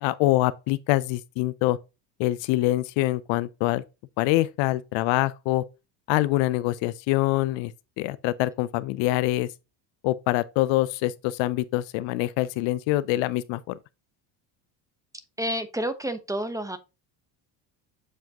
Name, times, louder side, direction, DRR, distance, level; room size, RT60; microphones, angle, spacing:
voice 1, 0.0-1.8 2.2-3.8 4.2-5.6 6.1-9.5 10.0-13.8, left 17 dB, 65° left, 0.5 m, -25 dB
voice 2, 15.4-16.8, right 1 dB, 5° right, 0.8 m, -29 dB
7.8 x 4.8 x 2.8 m
supercardioid pair, 85°, 49 cm